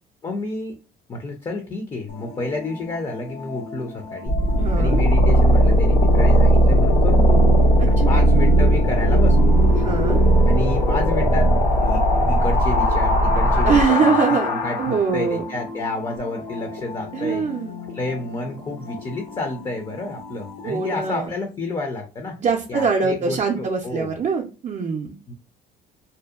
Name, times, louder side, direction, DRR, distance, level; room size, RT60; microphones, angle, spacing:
voice 1, 0.2-0.8 1.1-4.4 4.8-7.6 7.9-9.6 10.5-11.5 11.8-14.2 14.4-17.5 17.9-22.4 22.7-24.1 25.3-25.4, left 2 dB, 25° left, 3 dB, 0.5 m, -30 dB
sound 1, 2.1-21.3, left 3 dB, 75° left, 0.8 m, -36 dB
sound 2, 4.3-15.2, right 1 dB, 90° left, 1.2 m, -17 dB
voice 2, 4.6-5.0 7.8-8.1 9.7-10.2 13.6-14.5 14.8-15.4 17.1-17.8 20.6-21.3 22.4-25.1, right 5 dB, 40° right, 1 dB, 0.5 m, -23 dB
2.7 x 2.1 x 2.3 m, 0.32 s
cardioid pair, 110°, 17 cm